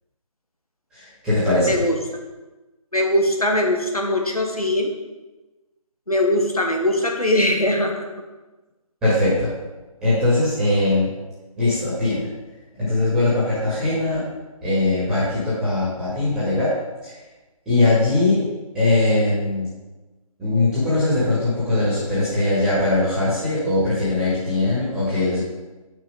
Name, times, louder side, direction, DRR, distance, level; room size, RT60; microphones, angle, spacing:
voice 1, 0.9-1.7 9.0-9.5 10.0-11.1 11.6-12.3 12.8-14.2 14.6-16.7 17.0-17.1 17.7-18.5 18.7-19.7 20.4-25.4, left 2 dB, 5° right, -13 dB, 2.0 m, -20 dB
voice 2, 1.6-2.2 2.9-4.9 6.1-8.1, left 1 dB, 85° left, 1 dB, 1.6 m, -21 dB
6.6 x 6.2 x 5.1 m, 1.2 s
figure-of-eight pair, 155°, 18 cm